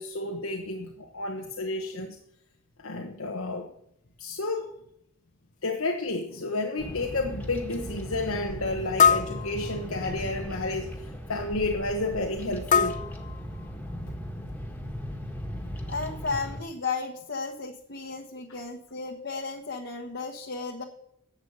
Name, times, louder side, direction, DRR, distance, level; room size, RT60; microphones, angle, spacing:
voice 1, 0.0-2.2 2.8-3.7 4.2-4.7 5.6-13.0, left 2 dB, 90° left, 3 dB, 1.2 m, -31 dB
sound 1, 5.6-5.7 6.4-6.5 7.0-7.2 9.0-10.2 12.7-14.0, left 6 dB, 40° left, 0.5 m, -25 dB
Bird vocalization bird call bird song, 6.8-16.6, equal, 10° left, 1.5 m, -37 dB
voice 2, 15.9-20.8, left 4 dB, 60° left, 2 dB, 1.2 m, -34 dB
11.0 x 8.1 x 5.5 m, 0.72 s
head